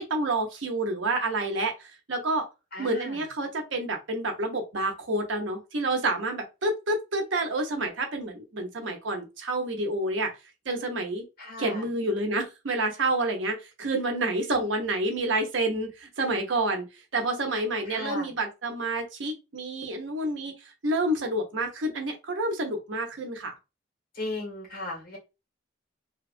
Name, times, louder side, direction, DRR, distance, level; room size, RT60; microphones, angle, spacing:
voice 1, 0.0-2.4 2.8-10.3 10.7-11.2 11.6-16.8 17.1-20.5 20.8-23.5, right 2 dB, 80° right, 0.8 m, -29 dB
voice 2, 2.7-3.2 11.4-11.8 17.9-18.3 24.1-25.2, left 2 dB, 50° left, 1.4 m, -36 dB
2.8 x 2.3 x 2.4 m
head